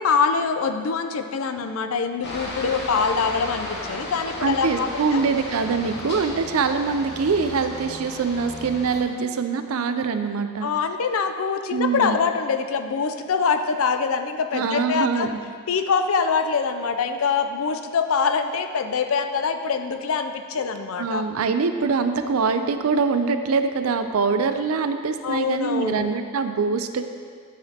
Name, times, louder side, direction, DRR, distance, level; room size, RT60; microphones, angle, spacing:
voice 1, 0.0-5.2 10.6-15.3 15.7-21.2 25.2-26.1, left 5 dB, 70° left, 8 dB, 0.5 m, -24 dB
Aircraft, 2.2-9.0, left 1 dB, 55° left, 1.1 m, -34 dB
voice 2, 4.4-10.7 11.7-12.2 14.5-15.4 21.0-27.0, right 5 dB, 80° right, 9 dB, 0.5 m, -24 dB
12.0 x 5.0 x 2.8 m, 2.1 s
head